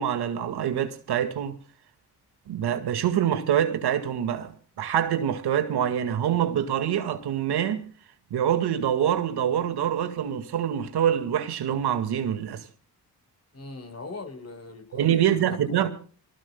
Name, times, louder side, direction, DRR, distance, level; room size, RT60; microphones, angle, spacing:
voice 1, 0.0-1.6 2.5-7.9 8.3-12.7 14.9-15.9, right 9 dB, 80° right, 2.0 m, -25 dB
voice 2, 13.5-15.8, left 3 dB, 40° left, 4.5 m, -41 dB
25.0 x 19.0 x 2.3 m
supercardioid pair, 60°, 39 cm